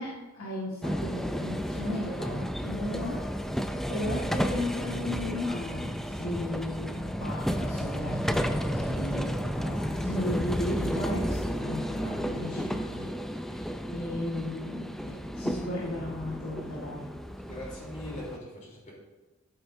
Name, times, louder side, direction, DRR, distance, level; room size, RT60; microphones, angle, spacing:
voice 1, 0.0-3.2 3.9-13.1 13.5-17.0, left 1 dB, 85° left, -5 dB, 1.9 m, -35 dB
sound 1, 0.8-18.4, equal, ahead, 0.4 m, -32 dB
voice 2, 17.4-18.9, left 1 dB, 40° left, -4 dB, 3.6 m, -41 dB
12.0 x 9.2 x 2.7 m, 1.1 s
head